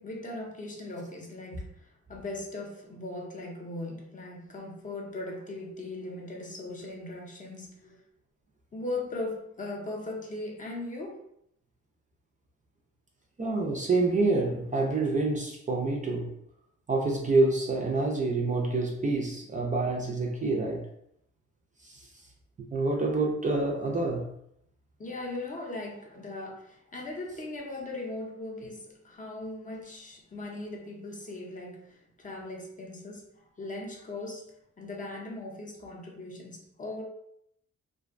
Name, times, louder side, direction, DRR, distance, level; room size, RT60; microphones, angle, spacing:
voice 1, 0.0-8.0 8.7-11.2 25.0-37.0, left 2 dB, 25° left, 0.6 m, -39 dB
voice 2, 13.4-16.3 16.9-20.9 21.8-22.1 22.6-24.3, right 3 dB, 25° right, 0.4 m, -27 dB
2.4 x 2.1 x 2.4 m
cardioid pair, 90°, 30 cm